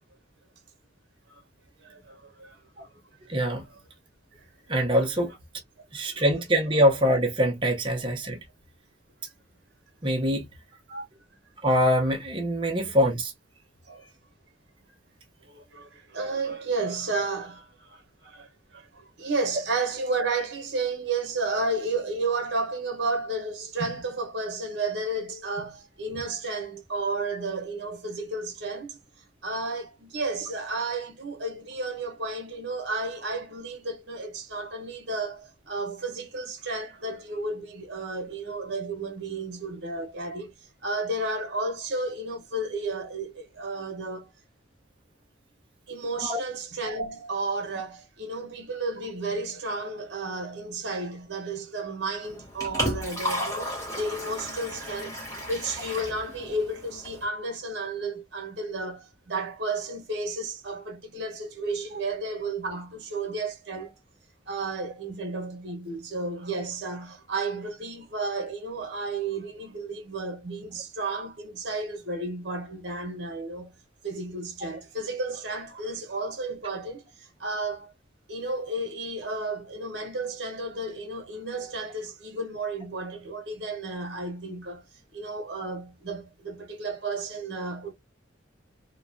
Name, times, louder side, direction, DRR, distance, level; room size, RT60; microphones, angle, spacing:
voice 1, 1.8-3.0 3.3-3.4 3.6-3.8 4.3-4.4 6.0-6.2 10.9-11.0 13.9-14.0 15.5-29.0 29.4-40.5 40.8-44.3 45.9-55.1 55.5-63.9 64.5-73.7 74.0-77.9 78.3-84.8 85.1-87.9, right 2 dB, 60° right, 0.9 m, -32 dB
voice 2, 3.3-3.6 4.7-5.3 5.9-8.4 10.0-10.4 11.6-13.3 46.2-46.4, equal, 25° right, 0.7 m, -23 dB
Liquid, 52.2-57.2, equal, 15° left, 1.1 m, -33 dB
3.0 x 2.2 x 2.5 m
head